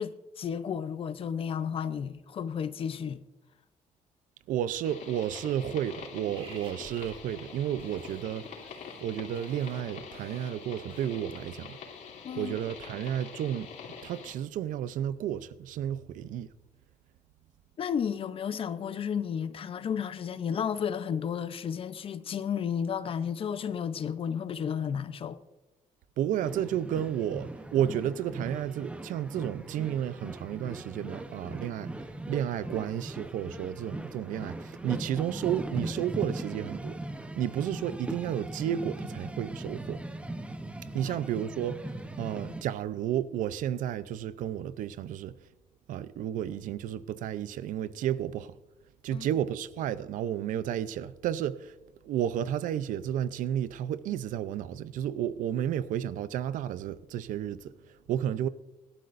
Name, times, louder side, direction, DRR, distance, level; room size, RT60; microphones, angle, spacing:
voice 1, 0.0-3.2 3.5-3.6 12.2-12.6 17.8-25.4 40.9-41.2 49.1-49.4, left 7 dB, 45° left, 0.7 m, -33 dB
voice 2, 4.5-8.5 9.0-11.8 12.4-13.7 14.0-16.5 26.2-37.0 37.4-40.0 40.9-45.4 45.9-48.6 49.0-51.8 52.0-58.5, right 10 dB, 90° right, 0.6 m, -32 dB
sound 1, 4.8-14.3, left 6 dB, 75° left, 2.9 m, -45 dB
sound 2, 6.3-11.8, right 5 dB, 40° right, 1.7 m, -54 dB
sound 3, 26.4-42.6, right 1 dB, 10° right, 0.8 m, -39 dB
25.0 x 12.0 x 2.6 m
cardioid pair, 140°, 13 cm